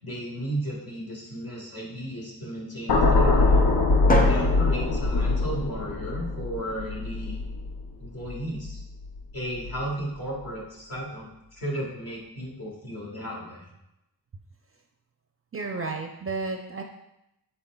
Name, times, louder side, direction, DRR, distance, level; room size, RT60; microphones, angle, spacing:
voice 1, 0.0-3.6 4.2-7.4 8.0-8.8 9.3-13.7, right 1 dB, 65° left, -4 dB, 1.5 m, -34 dB
sound 1, 2.9-9.2 9.5-9.8, left 3 dB, 85° left, 0.7 m, -23 dB
Drum, 4.1-6.1, equal, 20° left, 0.5 m, -29 dB
voice 2, 15.5-16.8, right 3 dB, 35° right, 2 dB, 0.4 m, -32 dB
5.4 x 4.3 x 2.2 m, 0.87 s
wide cardioid pair, 75°, 39 cm